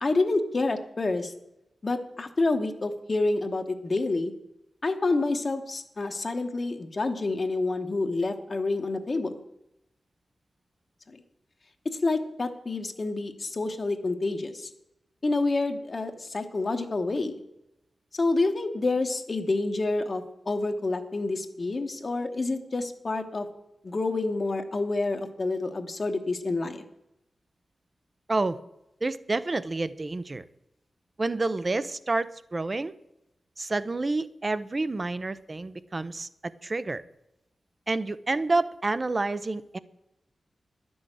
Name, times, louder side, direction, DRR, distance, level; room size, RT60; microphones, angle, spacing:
voice 1, 0.0-1.3 1.8-4.3 4.8-9.3 11.1-11.2 11.8-14.7 15.2-17.4 18.1-23.5 23.8-26.8, left 3 dB, 35° left, 5 dB, 1.0 m, -28 dB
voice 2, 29.0-30.5 31.2-32.9 33.6-37.0 37.9-39.8, right 3 dB, 30° right, 15 dB, 0.5 m, -29 dB
11.5 x 6.3 x 8.9 m, 0.86 s
wide cardioid pair, 135°, 0 cm